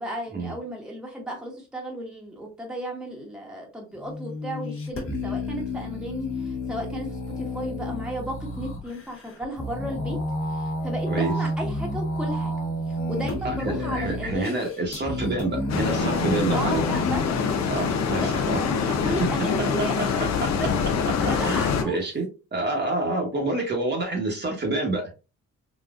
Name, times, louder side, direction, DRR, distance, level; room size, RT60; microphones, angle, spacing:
voice 1, 0.0-10.2 10.5-12.5 12.9-14.7 16.5-17.5 17.8-20.2 20.7-20.8 21.2-22.0, equal, 5° right, -1 dB, 1.2 m, -34 dB
sound 1, 3.9-17.2, left 1 dB, 45° left, 1.3 m, -30 dB
voice 2, 13.4-16.9 17.7-18.6 19.0-19.1 19.8-20.5 21.4-25.1, right 2 dB, 35° right, 0 dB, 1.2 m, -28 dB
sound 2, 15.7-21.8, left 6 dB, 65° left, 0.7 m, -25 dB
4.0 x 2.4 x 2.4 m, 0.31 s
cardioid pair, 90°, 30 cm